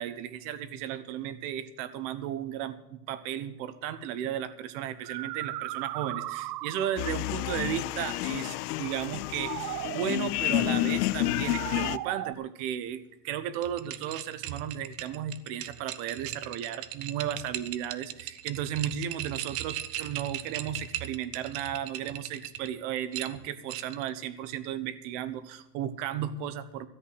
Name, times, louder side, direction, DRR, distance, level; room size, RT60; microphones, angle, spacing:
voice 1, 0.0-26.9, right 10 dB, 50° right, 14 dB, 1.2 m, -34 dB
sound 1, 3.9-4.0 4.8-7.2 9.1-10.2 11.2-12.3, right 16 dB, 90° right, 0.7 m, -37 dB
sound 2, 7.0-12.0, left 18 dB, 75° left, 0.7 m, -30 dB
sound 3, 13.5-22.7 23.1-24.1, right 13 dB, 30° right, 0.6 m, -38 dB
13.5 x 8.5 x 8.0 m, 0.93 s
supercardioid pair, 155°, 47 cm